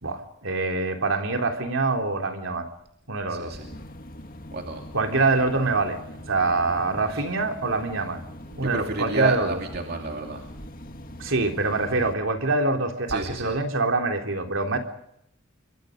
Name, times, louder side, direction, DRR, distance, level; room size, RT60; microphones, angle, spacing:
voice 1, 0.0-2.7 3.1-3.6 4.9-6.0 6.3-8.2 8.5-9.6 11.2-14.8, right 3 dB, 65° right, 4 dB, 3.6 m, -25 dB
voice 2, 3.3-3.7 4.5-4.8 7.1-7.2 8.6-10.7 13.1-13.6, right 2 dB, 50° right, 3 dB, 2.7 m, -30 dB
sound 1, 3.5-12.1, left 1 dB, 45° left, 1.7 m, -42 dB
28.0 x 24.5 x 5.2 m, 0.75 s
head